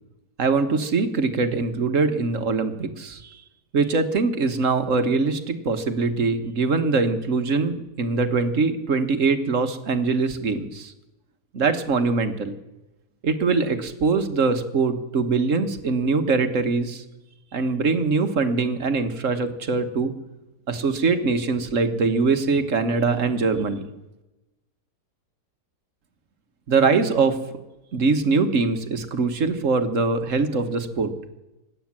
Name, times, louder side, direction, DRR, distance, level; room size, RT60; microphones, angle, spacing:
voice 1, 0.4-3.4 3.7-10.9 11.5-12.5 13.2-17.0 17.5-20.1 20.7-23.9 26.7-27.6 27.9-31.1, right 4 dB, 55° right, 8 dB, 1.6 m, -22 dB
17.0 x 11.0 x 7.4 m, 0.98 s
omnidirectional pair, 1.7 m